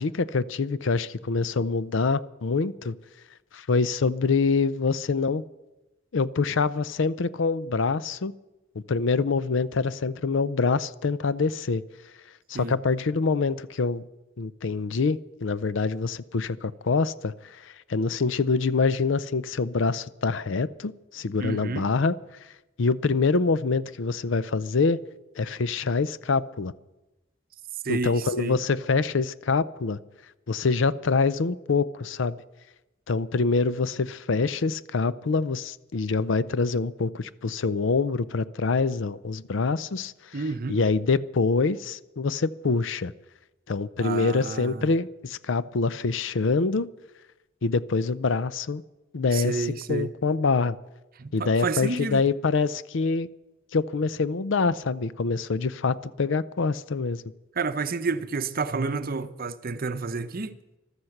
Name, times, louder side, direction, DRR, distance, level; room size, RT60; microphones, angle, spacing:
voice 1, 0.0-2.9 3.5-5.4 6.1-8.3 8.9-11.8 12.5-14.0 14.4-22.1 22.8-25.0 25.4-26.7 27.9-30.0 30.5-32.4 33.1-43.1 43.7-46.9 47.6-48.8 49.1-50.8 51.3-53.3 53.7-57.2, left 4 dB, 65° left, 0.5 m, -25 dB
voice 2, 21.4-21.9 27.8-28.6 40.3-40.8 44.0-45.0 49.3-50.1 51.2-52.2 57.5-60.6, right 4 dB, 45° right, 0.7 m, -30 dB
14.5 x 13.0 x 5.9 m
head